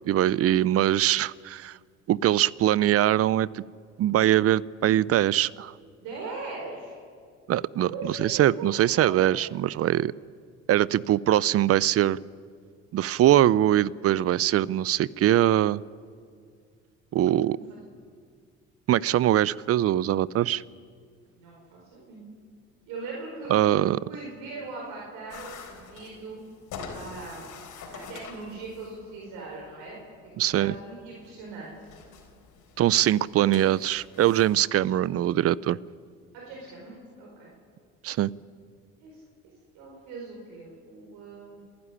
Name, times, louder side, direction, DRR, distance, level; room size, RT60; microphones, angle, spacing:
voice 1, 0.1-1.8 2.1-3.6 4.0-5.7 7.5-10.1 10.7-12.2 12.9-15.8 17.1-17.6 18.9-20.6 23.5-24.0 30.4-30.7 32.8-35.8 38.0-38.3, right 12 dB, 50° right, 22 dB, 0.5 m, -22 dB
voice 2, 6.0-7.0 7.9-9.5 17.2-17.8 21.3-22.3 22.9-23.5 24.1-26.4 26.9-27.6 27.9-29.9 30.4-31.7 33.4-33.5 36.3-37.5 39.0-39.2 39.7-41.6, right 3 dB, 80° right, -3 dB, 5.0 m, -40 dB
sound 1, 25.3-34.5, left 5 dB, 70° left, 3.9 m, -46 dB
27.5 x 11.5 x 9.9 m, 2.1 s
supercardioid pair, 75°, 32 cm